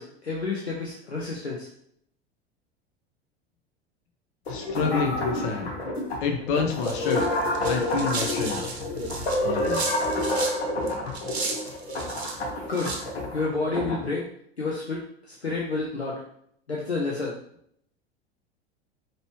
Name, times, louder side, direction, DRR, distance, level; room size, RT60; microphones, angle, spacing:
voice 1, 0.0-1.7 12.7-12.9 13.3-14.3 14.6-16.2 16.7-17.3, left 3 dB, 90° left, -3 dB, 0.8 m, -29 dB
sound 1, 4.5-14.0, left 1 dB, 70° left, 1.4 m, -29 dB
voice 2, 4.5-5.7 6.2-7.3 7.6-8.6 9.3-9.8, left 5 dB, 55° left, 3 dB, 0.8 m, -28 dB
sound 2, 6.8-10.6 10.9-12.4 12.7-13.0, right 3 dB, 80° right, 0.9 m, -34 dB
5.2 x 3.0 x 3.0 m, 0.67 s
figure-of-eight pair, 80°, 32 cm